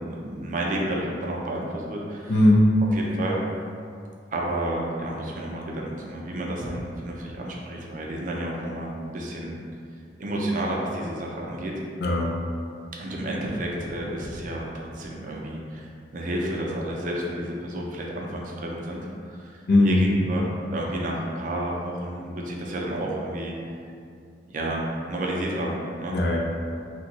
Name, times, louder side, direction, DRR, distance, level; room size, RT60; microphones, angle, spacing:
voice 1, 0.0-2.3 2.9-3.4 4.3-9.6 10.2-11.7 13.0-14.6 14.9-15.9 16.1-20.4 20.7-23.5 24.5-26.2, right 1 dB, 45° right, -2 dB, 0.5 m, -31 dB
voice 2, 2.3-2.7 12.0-12.3 19.7-20.0 26.1-26.4, left 1 dB, 65° left, -2 dB, 0.5 m, -18 dB
2.8 x 2.2 x 3.9 m, 2.4 s
head